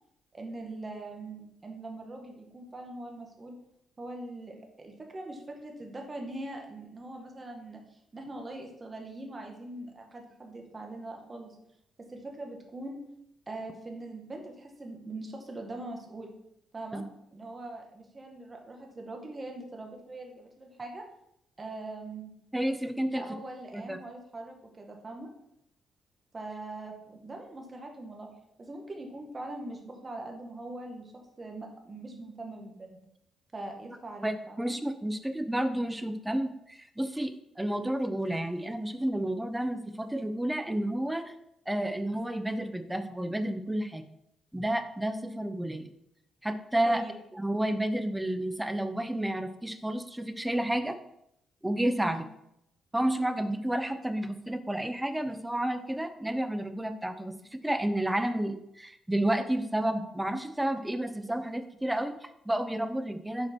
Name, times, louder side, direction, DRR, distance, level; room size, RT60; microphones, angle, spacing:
voice 1, 0.3-3.5 4.0-11.5 12.0-13.0 13.5-16.3 16.7-17.0 17.3-21.0 21.6-22.3 23.1-25.3 26.3-28.3 28.6-31.1 31.4-33.0 33.5-34.7 46.8-47.1 52.0-52.2, right 2 dB, 25° right, 2 dB, 1.7 m, -42 dB
voice 2, 22.5-23.2 23.7-24.0 34.2-41.3 41.7-44.0 44.5-45.9 46.4-47.0 47.3-51.0 51.6-52.2 52.9-63.5, right 1 dB, 10° right, 9 dB, 0.7 m, -31 dB
7.3 x 4.8 x 4.5 m, 0.78 s
cardioid pair, 90°, 0 cm